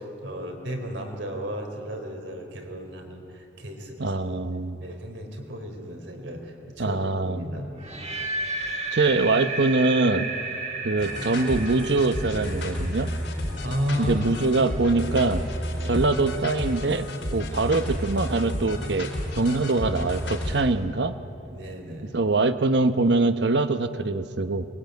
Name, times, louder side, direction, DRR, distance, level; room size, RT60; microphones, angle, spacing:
voice 1, 0.0-4.2 4.8-7.0 7.2-7.7 13.6-14.2 15.7-16.0 21.5-22.1, equal, 90° right, 3 dB, 3.8 m, -34 dB
voice 2, 4.0-4.8 6.8-7.5 8.9-10.3 10.8-13.1 14.0-15.4 15.8-17.1 17.3-21.1 22.1-24.6, right 3 dB, 75° right, 11 dB, 1.0 m, -23 dB
sound 1, 7.8-13.8, right 2 dB, 35° right, 1.9 m, -33 dB
sound 2, 11.0-20.6, equal, 85° left, 4.6 m, -31 dB
23.5 x 21.0 x 9.3 m, 2.8 s
head